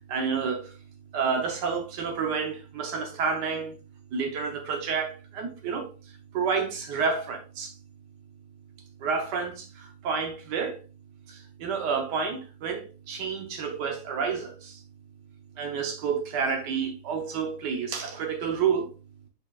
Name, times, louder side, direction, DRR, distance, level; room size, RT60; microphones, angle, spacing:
voice 1, 0.1-0.8 1.1-3.8 4.1-7.8 9.0-10.8 11.3-14.8 15.6-18.9, right 5 dB, 90° right, 1.6 m, -30 dB
8.6 x 4.6 x 2.4 m
omnidirectional pair, 1.8 m